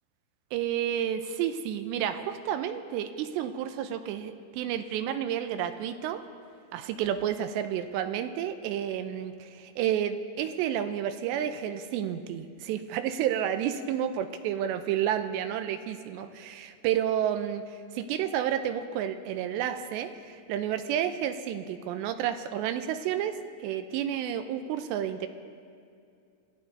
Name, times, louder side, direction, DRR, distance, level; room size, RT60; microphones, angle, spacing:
voice 1, 0.5-6.2 6.7-17.6 17.9-23.4 23.6-25.3, right 10 dB, 85° right, 9 dB, 2.8 m, -30 dB
25.0 x 14.5 x 2.7 m, 2.4 s
omnidirectional pair, 5.0 m